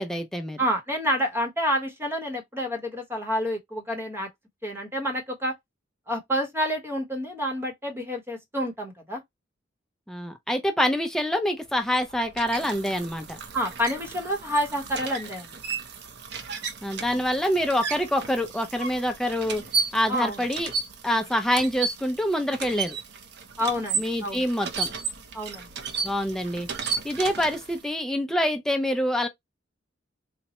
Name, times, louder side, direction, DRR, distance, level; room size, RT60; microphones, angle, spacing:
voice 1, 0.0-0.6 10.1-13.4 16.8-19.6 19.9-20.7 21.0-23.0 24.0-24.9 26.0-26.7 27.0-29.3, equal, 5° left, 0.5 m, -26 dB
voice 2, 0.6-4.3 4.6-5.5 6.1-9.2 13.5-15.5 20.1-20.4 23.6-24.4 25.3-25.7, equal, 15° right, 1.0 m, -28 dB
sound 1, 11.7-27.9, right 5 dB, 65° right, 0.7 m, -34 dB
4.2 x 2.2 x 2.8 m
head